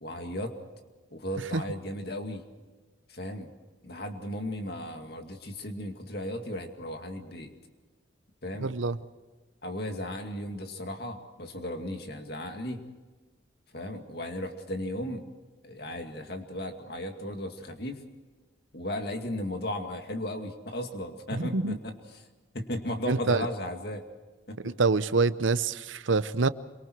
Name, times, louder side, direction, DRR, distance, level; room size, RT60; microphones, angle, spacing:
voice 1, 0.0-0.6 1.1-2.4 3.1-3.5 3.8-7.5 8.4-8.7 9.6-12.8 13.7-15.3 15.6-18.0 18.7-22.0 22.5-24.1 24.5-24.7, left 1 dB, 55° left, 5 dB, 2.3 m, -35 dB
voice 2, 8.6-9.0 21.3-21.8 23.1-23.5 24.6-26.5, right 4 dB, 85° right, 15 dB, 0.8 m, -26 dB
26.5 x 24.0 x 4.7 m, 1.3 s
head